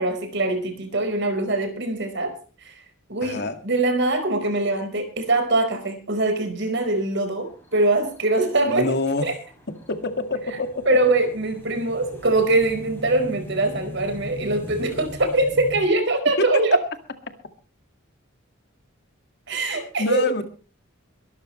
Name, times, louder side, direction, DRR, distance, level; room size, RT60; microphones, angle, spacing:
voice 1, 0.0-2.3 2.6-2.8 3.1-8.9 9.2-9.3 10.9-16.8 19.5-20.3, right 2 dB, 55° right, 7 dB, 4.6 m, -23 dB
voice 2, 3.2-3.6 8.7-9.3 9.9-11.0 16.4-16.6 20.0-20.4, left 2 dB, 50° left, 7 dB, 2.1 m, -26 dB
sound 1, 7.4-15.8, left 1 dB, 10° left, 6.1 m, -40 dB
23.0 x 13.5 x 3.2 m, 0.37 s
head